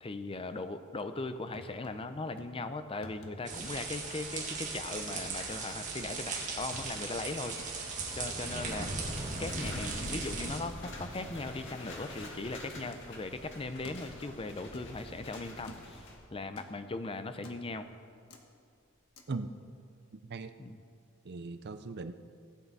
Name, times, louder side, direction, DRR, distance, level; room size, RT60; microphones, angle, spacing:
voice 1, 0.0-7.9 8.1-8.9 9.4-16.0 16.3-17.9 20.6-20.8, left 3 dB, 25° left, 9 dB, 0.6 m, -39 dB
sound 1, 1.5-2.1 2.4-2.6 3.0-3.6 3.9-4.2 4.6-5.1 5.5-5.8 6.1-6.9 7.6-8.2 8.7-9.3 9.7-10.3 10.5-10.6 11.0-13.2 13.8-14.2 14.7-15.2 15.7-16.0 16.6-16.8 17.4-17.8 18.3-18.4 19.2-19.3, left 1 dB, 85° left, 1.3 m, -51 dB
sound 2, 3.5-10.6, right 4 dB, 35° right, 1.9 m, -38 dB
sound 3, 8.4-16.1, left 1 dB, 60° left, 2.0 m, -44 dB
voice 2, 20.1-20.5 21.2-22.1, right 3 dB, 50° right, 10 dB, 0.6 m, -39 dB
17.0 x 8.6 x 4.1 m, 2.3 s
head